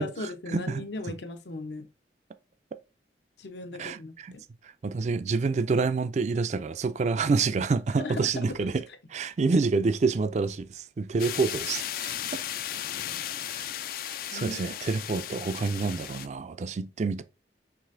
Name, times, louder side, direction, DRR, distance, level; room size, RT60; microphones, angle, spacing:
voice 1, 0.0-1.9 3.4-4.4 8.0-8.7 14.3-14.9, left 2 dB, 70° left, 0.7 m, -38 dB
voice 2, 0.5-0.8 3.8-4.4 4.8-8.8 9.1-12.4 13.5-13.7 14.0-17.2, right 4 dB, 40° right, 0.3 m, -27 dB
sound 1, 11.2-16.3, left 11 dB, 55° left, 0.3 m, -35 dB
4.9 x 3.3 x 2.5 m
head